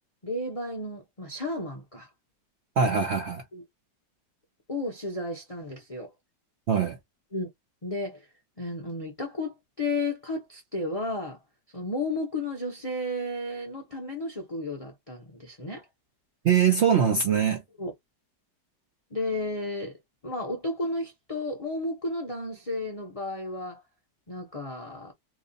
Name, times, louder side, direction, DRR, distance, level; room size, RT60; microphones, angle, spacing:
voice 1, 0.2-2.1 3.5-3.6 4.7-6.1 7.3-7.5 7.8-8.3 8.6-11.4 11.7-15.8 17.8-17.9 19.1-19.9 20.2-23.8 24.3-25.1, left 2 dB, 40° left, 0.5 m, -33 dB
voice 2, 2.8-3.4 6.7-7.0 16.4-17.6, right 7 dB, 60° right, 0.7 m, -22 dB
3.0 x 2.4 x 3.9 m
omnidirectional pair, 2.0 m